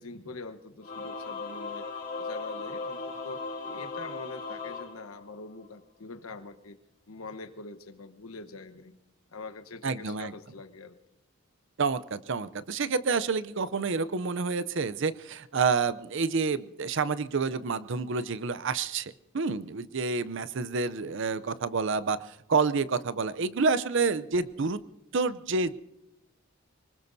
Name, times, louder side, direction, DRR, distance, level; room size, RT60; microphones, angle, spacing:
voice 1, 0.0-1.9 2.2-6.8 7.1-8.9 9.3-10.9, left 3 dB, 75° left, 10 dB, 1.1 m, -44 dB
Singing / Musical instrument, 0.8-5.7, left 4 dB, 35° left, 2.8 m, -37 dB
voice 2, 9.8-10.3 11.8-24.8 25.1-25.7, right 4 dB, 55° right, 16 dB, 0.6 m, -28 dB
24.5 x 20.0 x 2.7 m, 0.94 s
head